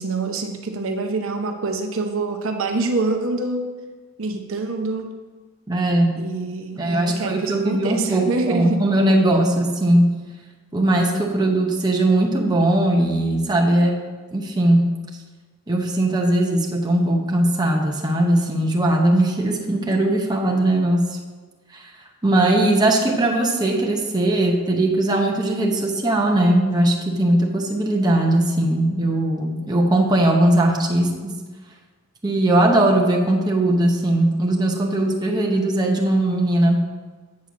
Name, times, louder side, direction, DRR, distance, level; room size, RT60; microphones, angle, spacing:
voice 1, 0.0-3.7 4.2-5.2 6.1-8.9, right 3 dB, 60° right, 4 dB, 0.7 m, -26 dB
voice 2, 5.7-6.3 6.8-10.2 10.7-14.0 14.3-15.0 15.7-21.1 21.7-21.9 22.2-31.3 32.2-36.8, right 1 dB, 20° right, 0 dB, 0.8 m, -19 dB
8.5 x 4.4 x 6.1 m, 1.4 s
head